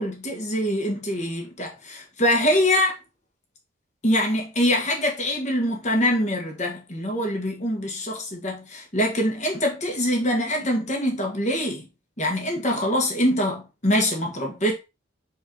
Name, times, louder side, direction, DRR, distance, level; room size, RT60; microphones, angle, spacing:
voice 1, 0.0-3.0 4.0-11.9 12.2-14.7, equal, 35° left, 1.7 m, -24 dB
4.7 x 4.4 x 5.2 m
head